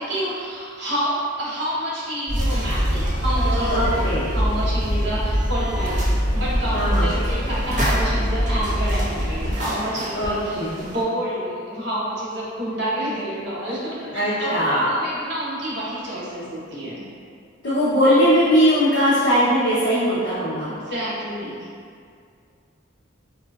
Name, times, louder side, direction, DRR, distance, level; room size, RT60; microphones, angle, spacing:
voice 1, 0.0-3.8 4.3-6.1 6.3-17.0 20.6-21.7, equal, 55° right, -9 dB, 0.8 m, -28 dB
Train, 2.3-9.5, equal, 20° left, 0.9 m, -23 dB
sound 1, 2.3-11.0, equal, 35° right, 0.4 m, -33 dB
voice 2, 3.7-4.3 6.7-7.1 10.1-10.7 14.1-14.9 17.6-20.7, equal, 55° left, -12 dB, 0.6 m, -20 dB
3.7 x 2.4 x 2.2 m, 2.2 s
head